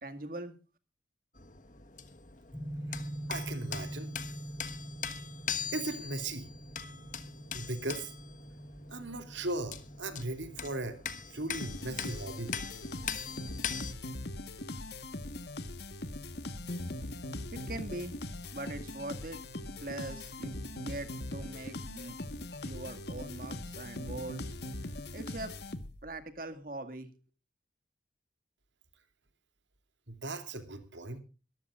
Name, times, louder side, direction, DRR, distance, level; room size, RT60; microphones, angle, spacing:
voice 1, 0.0-0.6 17.5-18.2 18.5-19.4 19.8-22.2 22.6-24.5 24.8-25.6 26.0-27.1, right 2 dB, 50° right, 8 dB, 2.1 m, -42 dB
sound 1, 1.3-13.9, left 7 dB, 45° left, 1.3 m, -42 dB
sound 2, 2.5-12.3, right 1 dB, 5° left, 1.3 m, -45 dB
voice 2, 3.3-4.1 5.7-6.5 7.5-8.1 8.9-11.0 11.3-12.6 30.1-31.2, right 2 dB, 85° right, 9 dB, 2.9 m, -37 dB
sound 3, 11.6-26.2, left 1 dB, 65° left, 1.4 m, -41 dB
23.0 x 14.0 x 2.5 m, 0.32 s
head